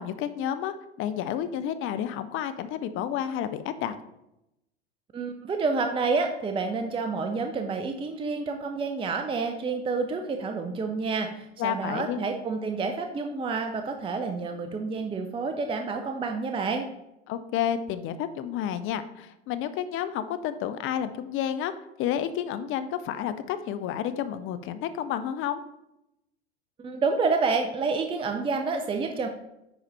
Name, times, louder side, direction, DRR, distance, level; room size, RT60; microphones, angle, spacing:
voice 1, 0.0-4.0 11.6-12.2 17.3-21.7 22.0-25.6, left 10 dB, 40° left, 12 dB, 0.7 m, -30 dB
voice 2, 5.1-16.8 26.8-29.3, right 4 dB, 15° right, 5 dB, 0.6 m, -29 dB
10.0 x 4.0 x 4.2 m, 0.87 s
hypercardioid pair, 90°, 33 cm